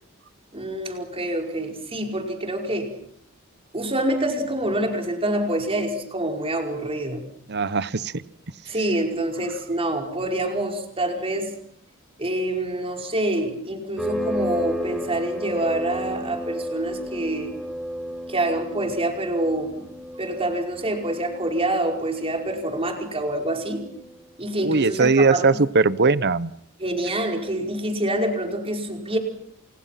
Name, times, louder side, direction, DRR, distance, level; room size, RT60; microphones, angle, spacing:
voice 1, 0.5-2.9 3.7-7.2 8.7-11.5 12.2-17.5 18.3-19.8 20.2-23.9 24.4-25.6 26.8-29.2, right 1 dB, 25° right, 3 dB, 5.2 m, -26 dB
voice 2, 7.5-8.2 24.6-26.5, right 4 dB, 50° right, 16 dB, 1.0 m, -20 dB
sound 1, 14.0-24.3, equal, ahead, 4.8 m, -33 dB
30.0 x 28.0 x 5.9 m, 0.69 s
head